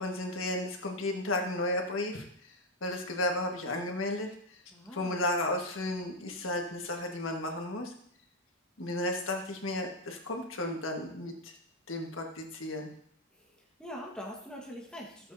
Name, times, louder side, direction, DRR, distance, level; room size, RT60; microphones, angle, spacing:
voice 1, 0.0-2.6 2.8-4.3 4.9-7.9 8.8-11.5 11.9-12.9, left 1 dB, 90° left, 2 dB, 1.6 m, -33 dB
voice 2, 4.7-5.2 13.3-15.3, equal, 5° left, -3 dB, 1.4 m, -44 dB
14.0 x 7.6 x 2.7 m, 0.67 s
head